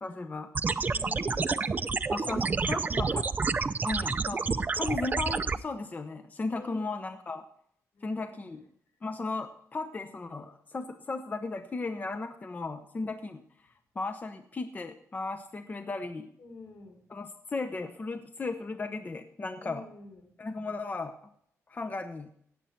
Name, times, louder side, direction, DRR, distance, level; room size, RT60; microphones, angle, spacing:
voice 1, 0.0-0.5 2.1-3.3 3.8-7.4 8.0-8.6 9.0-13.4 13.9-16.3 17.1-19.8 20.4-21.1 21.7-22.3, left 3 dB, 30° left, 8 dB, 0.9 m, -36 dB
sound 1, 0.5-5.6, right 4 dB, 30° right, 0.5 m, -29 dB
voice 2, 0.8-2.6 6.5-6.9 7.9-8.7 13.0-13.1 16.4-17.0 19.6-20.3, left 3 dB, 75° left, 4 dB, 3.8 m, -48 dB
17.5 x 7.9 x 4.5 m, 0.68 s
cardioid pair, 110°, 6 cm